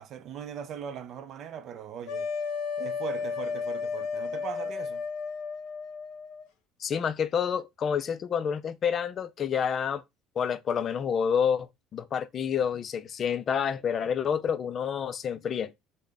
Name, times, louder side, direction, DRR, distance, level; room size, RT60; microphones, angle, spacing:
voice 1, 0.0-2.5 2.8-5.0, right 8 dB, 45° right, 0.5 m, -40 dB
sound 1, 2.1-6.5, left 5 dB, 75° left, 0.7 m, -33 dB
voice 2, 6.8-10.0 10.4-15.7, left 7 dB, 35° left, 0.3 m, -28 dB
3.7 x 2.1 x 3.4 m
cardioid pair, 145°, 0 cm